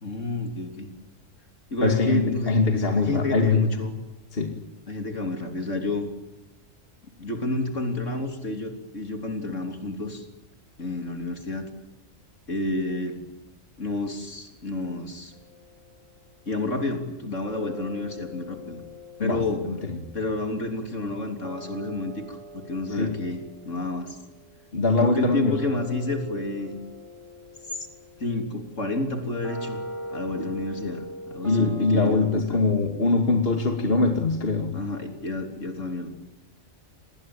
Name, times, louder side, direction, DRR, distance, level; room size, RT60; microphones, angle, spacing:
voice 1, 0.0-0.9 1.7-4.0 4.9-6.1 7.2-10.2 10.8-11.7 12.5-13.2 13.8-15.3 16.5-18.8 19.2-19.7 20.1-24.2 25.0-26.8 27.7-27.9 28.2-29.8 30.1-32.6 34.7-36.1, left 2 dB, 65° left, 5 dB, 3.9 m, -30 dB
voice 2, 1.8-3.7 4.3-4.5 19.2-19.4 19.9-20.0 23.0-23.1 24.7-25.5 31.4-34.7, left 3 dB, 45° left, 4 dB, 2.6 m, -22 dB
sound 1, 15.3-16.7 17.4-32.3, left 1 dB, 25° right, 5.5 m, -42 dB
27.5 x 20.0 x 8.9 m, 1.0 s
omnidirectional pair, 1.4 m